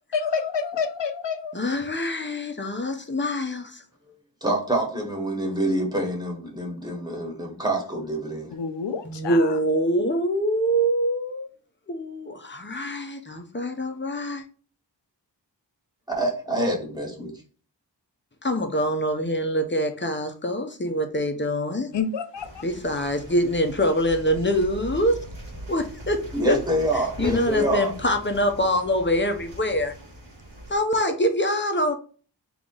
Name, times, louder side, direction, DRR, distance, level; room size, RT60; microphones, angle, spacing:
voice 1, 0.1-1.6 8.5-9.6 21.9-22.6 23.0-23.1, left 6 dB, 80° left, 0.6 m, -28 dB
voice 2, 1.5-3.8 9.0-11.5 11.9-14.5 18.4-21.9 22.6-25.3 25.7-26.6 27.2-29.9 30.7-31.9, equal, 25° left, 0.7 m, -24 dB
voice 3, 4.4-8.5 16.1-17.3 26.3-27.9, right 1 dB, 10° right, 1.5 m, -26 dB
sound 1, 22.3-30.8, right 1 dB, 80° right, 1.6 m, -40 dB
3.8 x 3.0 x 3.7 m
wide cardioid pair, 60°, 42 cm